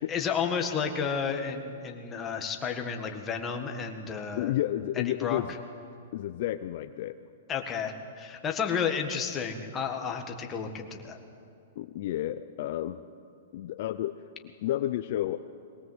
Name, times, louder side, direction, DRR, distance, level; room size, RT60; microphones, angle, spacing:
voice 1, 0.1-4.5 5.1-5.4 7.5-11.2, left 6 dB, 20° left, 3 dB, 1.7 m, -32 dB
voice 2, 4.3-5.5 6.1-7.2 11.8-13.0 13.5-14.3 14.6-15.4, left 13 dB, 55° left, 10 dB, 0.6 m, -31 dB
22.0 x 19.0 x 8.0 m, 2.6 s
hypercardioid pair, 145°, 0 cm